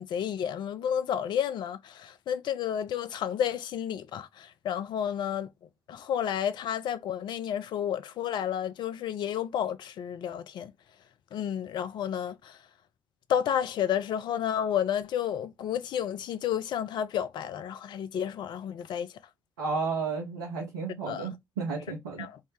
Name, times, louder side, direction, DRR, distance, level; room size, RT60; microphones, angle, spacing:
voice 1, 0.0-5.5 5.9-10.7 11.3-12.6 13.3-19.1 21.1-21.3 22.2-22.4, left 9 dB, 55° left, 0.4 m, -31 dB
voice 2, 19.6-22.2, right 4 dB, 80° right, 0.7 m, -32 dB
3.4 x 2.1 x 3.1 m
figure-of-eight pair, 40°, 9 cm